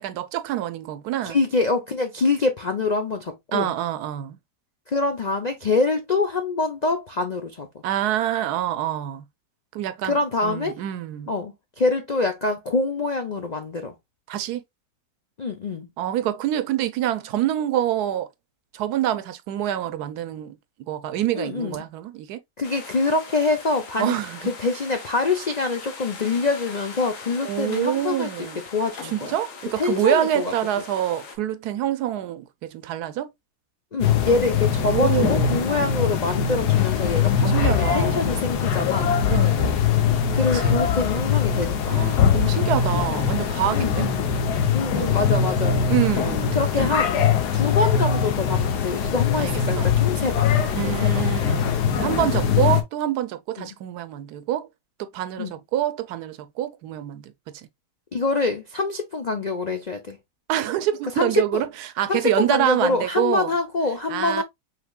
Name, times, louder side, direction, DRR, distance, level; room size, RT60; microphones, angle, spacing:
voice 1, 0.0-1.4 3.5-4.4 7.8-9.2 9.7-11.3 14.3-14.6 16.0-18.3 18.7-20.6 20.9-22.4 24.0-24.5 27.4-28.6 29.0-33.3 34.8-35.7 37.5-38.2 39.3-39.8 40.5-40.8 41.9-44.1 44.9-45.3 45.9-46.9 49.4-49.9 50.7-54.7 55.0-57.7 60.5-63.5 64.1-64.4, right 12 dB, 75° right, 1.1 m, -26 dB
voice 2, 1.2-3.7 4.9-7.7 10.0-10.8 11.3-13.9 15.4-15.9 21.4-21.8 22.6-24.2 24.5-28.3 28.7-29.3 29.8-30.5 33.9-39.1 40.3-41.8 43.7-44.2 44.7-45.8 46.5-50.5 50.8-51.2 53.6-53.7 55.4-55.5 58.1-60.2 61.2-61.6 62.1-64.4, left 3 dB, 90° left, 0.3 m, -25 dB
sound 1, 22.6-31.4, left 4 dB, 55° left, 1.4 m, -41 dB
sound 2, 34.0-52.8, left 7 dB, 70° left, 1.4 m, -22 dB
5.8 x 3.7 x 2.3 m
omnidirectional pair, 1.8 m